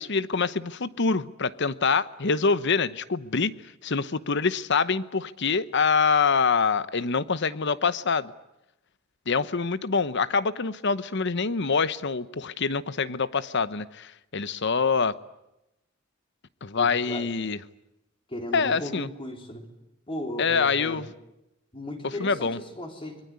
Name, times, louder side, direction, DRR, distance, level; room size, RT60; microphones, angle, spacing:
voice 1, 0.0-3.5 3.8-8.3 9.3-15.1 16.6-17.6 18.5-19.1 20.4-21.1 22.0-22.6, left 5 dB, 60° left, 16 dB, 1.0 m, -25 dB
voice 2, 16.8-17.3 18.3-19.7 20.1-21.0 21.7-23.2, left 1 dB, 25° left, 4 dB, 3.7 m, -36 dB
25.5 x 22.5 x 9.5 m, 0.90 s
head